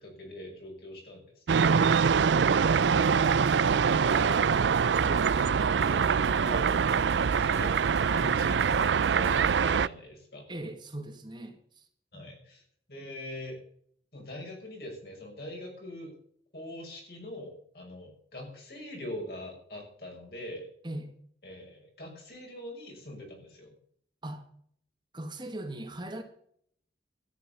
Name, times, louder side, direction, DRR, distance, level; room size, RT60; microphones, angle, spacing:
voice 1, 0.0-6.7 7.2-10.5 12.1-12.6 12.9-13.6 14.1-16.1 16.5-20.7 21.4-23.7, left 1 dB, 60° left, 0 dB, 6.1 m, -43 dB
sound 1, 1.5-9.9, right 6 dB, 85° right, 0.4 m, -24 dB
sound 2, 2.8-9.6, left 1 dB, 40° left, 2.4 m, -48 dB
voice 2, 10.5-11.9 12.1-12.3 20.8-21.1 24.2-24.5 25.1-26.2, right 1 dB, 25° right, 4 dB, 1.8 m, -39 dB
13.0 x 9.6 x 6.9 m, 0.64 s
head